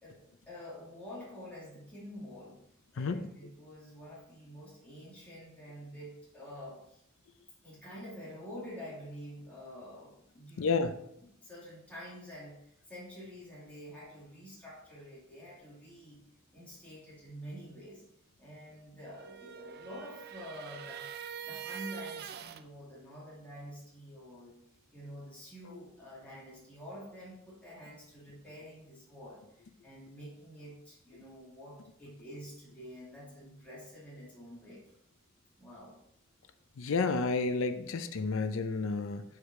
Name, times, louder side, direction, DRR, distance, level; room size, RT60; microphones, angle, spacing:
voice 1, 0.0-2.6 2.9-7.0 7.6-10.9 11.4-16.2 16.5-18.0 18.4-21.1 21.4-24.5 24.9-34.8 35.6-35.9, equal, 5° left, -9 dB, 2.4 m, -48 dB
voice 2, 10.6-10.9 25.6-25.8 36.8-39.2, left 4 dB, 65° left, 9 dB, 0.5 m, -31 dB
sound 1, 19.0-22.6, right 8 dB, 50° right, 0.4 m, -44 dB
6.8 x 4.8 x 4.3 m, 0.75 s
head